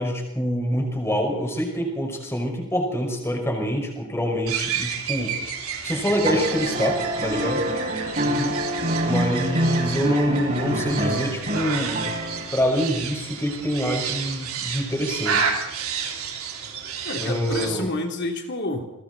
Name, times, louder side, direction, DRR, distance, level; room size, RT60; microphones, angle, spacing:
voice 1, 0.0-5.4 5.8-7.6 8.7-12.0 12.5-15.5 17.2-17.9, equal, 10° left, 2 dB, 5.3 m, -26 dB
sound 1, 4.5-17.7, right 7 dB, 70° right, 3.5 m, -31 dB
sound 2, 6.2-12.7 14.2-14.3, right 1 dB, 40° right, 6.4 m, -26 dB
voice 2, 8.2-8.6 17.0-18.9, left 2 dB, 50° left, 2 dB, 3.1 m, -29 dB
29.5 x 22.0 x 4.1 m, 0.89 s
head